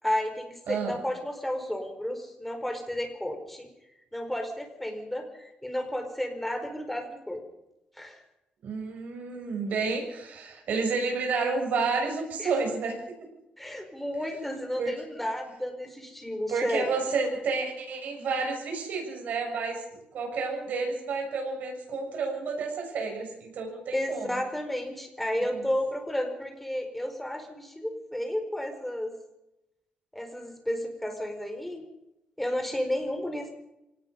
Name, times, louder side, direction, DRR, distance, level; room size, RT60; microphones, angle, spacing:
voice 1, 0.0-3.7 4.1-7.4 8.0-8.2 12.4-12.5 13.6-17.0 23.9-29.1 30.1-31.8 32.4-33.5, left 1 dB, 5° left, 4 dB, 4.7 m, -32 dB
voice 2, 0.7-1.0 8.6-13.0 14.8-14.9 16.5-24.4 25.3-25.6, right 4 dB, 70° right, 2 dB, 6.9 m, -30 dB
25.0 x 19.0 x 5.5 m, 0.88 s
cardioid pair, 135°, 3 cm